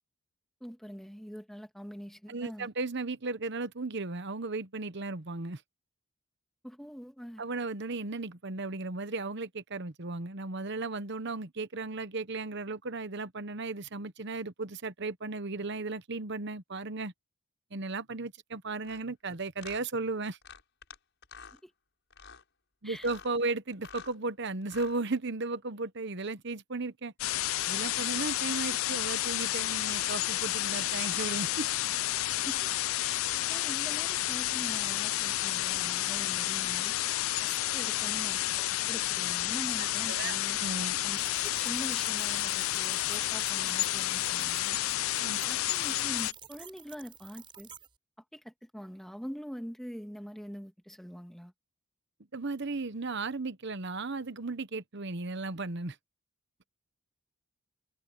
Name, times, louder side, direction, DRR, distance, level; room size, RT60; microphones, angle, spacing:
voice 1, 0.6-2.7 6.6-7.4 21.5-21.7 22.8-23.1 32.3-32.7 33.0-33.2 33.5-37.0 37.4-40.6 41.0-44.8 45.4-47.7 48.3-51.5, equal, ahead, 1.8 m, -44 dB
voice 2, 2.3-5.6 7.4-17.1 17.7-20.4 22.8-27.1 27.7-31.7 40.1-41.0 45.2-45.4 52.3-56.0, right 3 dB, 50° right, 1.0 m, -35 dB
sound 1, 18.8-19.0 19.6-19.8 20.4-21.0 21.2-21.6 22.1-22.4 23.0-23.3 23.7-24.2 24.6-25.0, left 6 dB, 55° left, 7.2 m, -49 dB
sound 2, 27.2-46.3, left 15 dB, 70° left, 0.4 m, -31 dB
sound 3, 41.2-47.9, right 8 dB, 25° right, 3.6 m, -50 dB
head